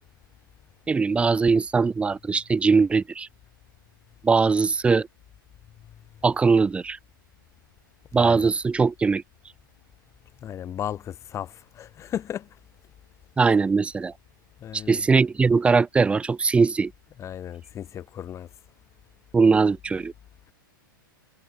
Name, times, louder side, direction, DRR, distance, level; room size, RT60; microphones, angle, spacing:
voice 1, 0.9-3.3 4.2-5.1 6.2-7.0 8.1-9.2 13.4-14.1 14.7-16.9 19.3-20.1, right 4 dB, 10° right, 0.5 m, -21 dB
voice 2, 8.2-8.5 10.4-12.5 14.6-15.0 17.2-18.5, left 10 dB, 25° left, 1.7 m, -35 dB
hypercardioid pair, 105°, 12 cm